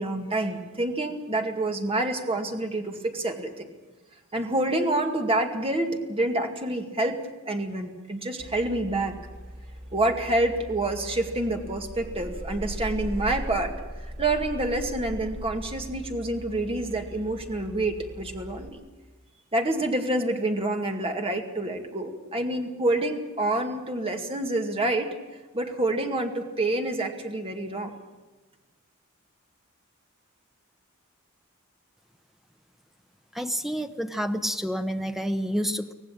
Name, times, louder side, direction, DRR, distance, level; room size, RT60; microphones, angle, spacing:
voice 1, 0.0-3.7 4.3-9.1 9.9-13.7 14.2-18.8 19.5-25.1 25.5-27.9, right 2 dB, 25° right, 3 dB, 2.2 m, -27 dB
sound 1, 8.4-18.7, equal, 45° right, 2.3 m, -39 dB
voice 2, 33.3-35.9, equal, ahead, 8 dB, 1.0 m, -29 dB
25.0 x 17.5 x 8.8 m, 1.2 s
head